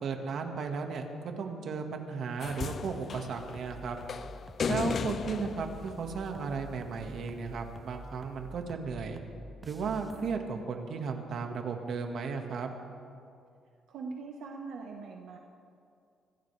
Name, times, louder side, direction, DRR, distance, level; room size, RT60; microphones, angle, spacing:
voice 1, 0.0-4.0 4.7-9.2 9.6-12.7, right 5 dB, 60° right, 4 dB, 1.7 m, -35 dB
sound 1, 2.4-6.8 7.9-8.0, left 6 dB, 45° left, 0.3 m, -36 dB
sound 2, 3.4-10.4, equal, 10° right, 0.8 m, -49 dB
voice 2, 13.9-15.4, right 4 dB, 75° right, 1 dB, 1.3 m, -41 dB
25.5 x 16.0 x 3.4 m, 2.4 s
cardioid pair, 120°, 0 cm